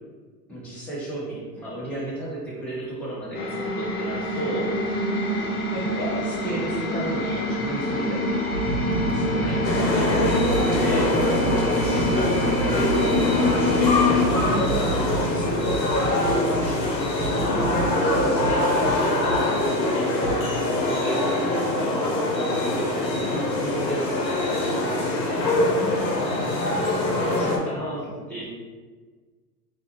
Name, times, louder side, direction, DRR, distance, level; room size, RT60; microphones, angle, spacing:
voice 1, 0.5-5.3 5.7-8.4 9.1-14.0 14.5-17.0 17.9-19.5 19.9-25.5 27.0-28.5, right 1 dB, ahead, -7 dB, 1.0 m, -33 dB
sound 1, 3.3-14.3, left 2 dB, 60° left, 0.9 m, -26 dB
voice 2, 4.9-5.5 14.4-14.9 17.3-18.3 25.7-26.6, right 2 dB, 40° right, -5 dB, 1.1 m, -35 dB
sound 2, 6.2-6.5 7.3-7.5 8.1-19.4 20.2-20.4, right 3 dB, 65° right, 1.0 m, -30 dB
sound 3, 9.6-27.6, left 2 dB, 85° left, 1.0 m, -24 dB
3.9 x 2.7 x 2.9 m, 1.4 s
hypercardioid pair, 100°, 50 cm